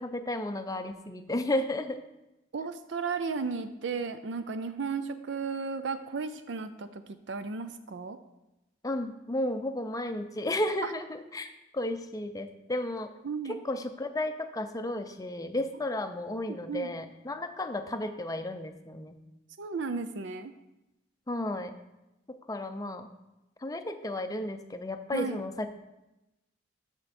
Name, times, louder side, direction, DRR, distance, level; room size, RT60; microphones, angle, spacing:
voice 1, 0.0-2.0 8.8-13.1 13.5-19.2 21.3-21.7 22.5-23.1 23.6-25.7, left 1 dB, 20° left, 7 dB, 0.5 m, -33 dB
voice 2, 2.5-7.0 7.3-8.2 10.8-10.9 13.2-13.6 16.5-16.9 19.6-20.5 25.1-25.4, right 4 dB, 60° right, 10 dB, 0.5 m, -34 dB
13.0 x 4.4 x 4.2 m, 0.96 s
head